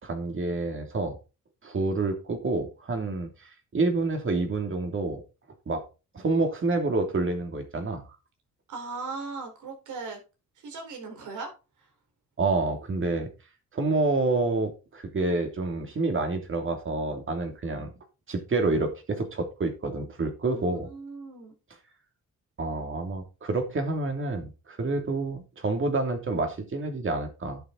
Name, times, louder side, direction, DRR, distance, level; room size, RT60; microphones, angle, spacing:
voice 1, 0.0-1.2 1.6-5.2 5.7-5.8 6.1-8.0 12.4-13.3 13.7-17.9 18.3-20.9 22.6-27.6, right 3 dB, 40° right, 5 dB, 3.0 m, -28 dB
voice 2, 8.7-10.2 10.6-11.5 11.8-11.9 20.5-21.5, right 4 dB, 75° right, 4 dB, 4.6 m, -38 dB
11.0 x 7.3 x 4.0 m, 0.31 s
cardioid pair, 90°, 30 cm